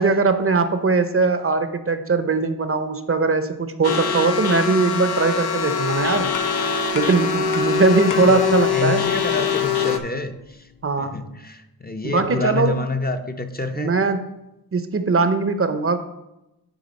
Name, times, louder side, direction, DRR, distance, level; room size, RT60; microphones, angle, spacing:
voice 1, 0.0-6.3 6.9-9.0 10.8-11.2 12.0-12.8 13.8-14.3 14.7-16.0, right 4 dB, 35° right, 9 dB, 0.7 m, -20 dB
sound 1, 3.8-10.0, left 6 dB, 90° left, 0.8 m, -23 dB
sound 2, 5.9-11.2, left 5 dB, 60° left, 0.9 m, -38 dB
voice 2, 8.1-10.7 11.0-13.9, left 3 dB, 25° left, 6 dB, 0.6 m, -28 dB
10.0 x 3.5 x 5.3 m, 0.90 s
wide cardioid pair, 85°, 37 cm